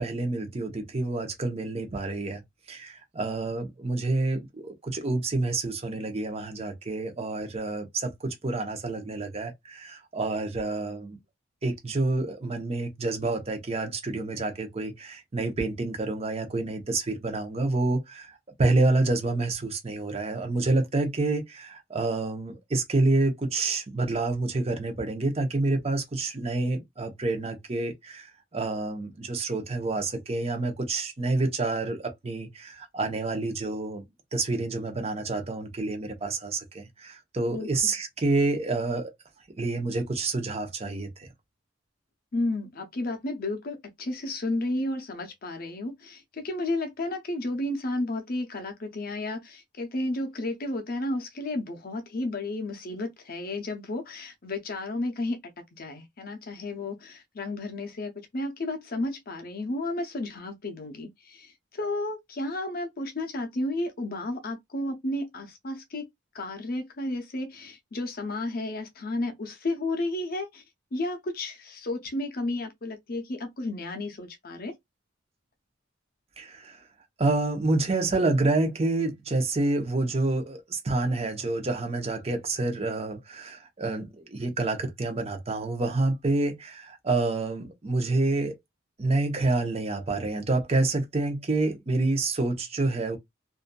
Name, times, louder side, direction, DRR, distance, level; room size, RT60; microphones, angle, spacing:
voice 1, 0.0-2.4 2.7-11.2 11.6-34.0 34.3-39.1 39.6-41.3 76.4-76.8 77.2-88.6 89.0-93.2, right 2 dB, 30° right, 0.7 m, -28 dB
voice 2, 42.3-66.1 66.3-70.6 70.9-74.8, left 2 dB, 50° left, 0.6 m, -32 dB
2.6 x 2.4 x 2.2 m
head